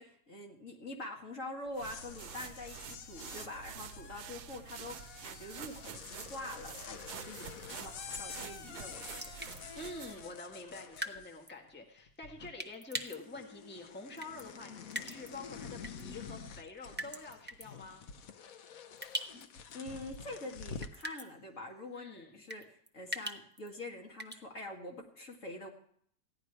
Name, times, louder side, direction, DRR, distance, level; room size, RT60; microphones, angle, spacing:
voice 1, 0.0-9.3 19.7-25.7, left 1 dB, 45° left, 1 dB, 2.2 m, -45 dB
sound 1, 1.7-11.7 12.0-12.7 13.0-21.0, left 6 dB, 60° left, 1.1 m, -48 dB
sound 2, 1.7-10.3, right 8 dB, 70° right, 1.2 m, -48 dB
sound 3, 9.1-9.6 11.0-11.2 11.5-11.6 12.6-13.2 14.2-14.4 14.9-15.3 15.8-16.0 17.0-17.7 19.0-19.4 19.7-19.8 20.8-21.3 22.5-23.7 24.2-24.4, right 1 dB, 10° right, 0.5 m, -40 dB
voice 2, 9.7-18.1 21.9-22.4, left 3 dB, 5° left, 1 dB, 1.6 m, -47 dB
15.5 x 11.0 x 4.7 m, 0.64 s
omnidirectional pair, 1.9 m